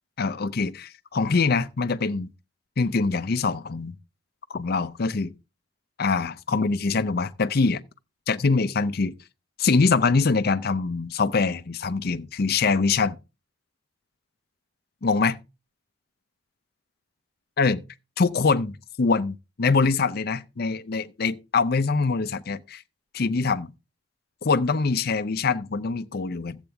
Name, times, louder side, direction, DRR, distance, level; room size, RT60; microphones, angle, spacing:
voice 1, 0.2-2.3 2.8-3.9 4.5-5.3 6.0-7.8 8.3-9.1 9.6-13.2 15.0-15.4 17.6-17.8 18.2-22.8 23.1-23.7 24.4-26.6, left 4 dB, 55° left, 0.6 m, -24 dB
14.0 x 8.1 x 3.4 m
head